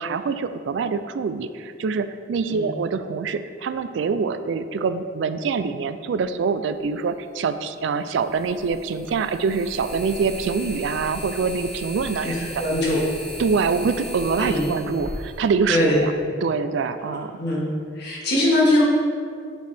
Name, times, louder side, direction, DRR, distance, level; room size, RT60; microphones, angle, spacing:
voice 1, 0.0-12.6 13.4-16.1 16.4-17.4, right 5 dB, 65° right, 11 dB, 0.3 m, -25 dB
sound 1, 6.8-6.9 8.2-16.1, equal, ahead, 1.1 m, -37 dB
voice 2, 12.2-13.0 14.4-14.6 15.7-16.0 17.4-17.6 17.9-18.8, left 1 dB, 55° left, -6 dB, 1.6 m, -21 dB
7.9 x 4.5 x 3.4 m, 2.3 s
head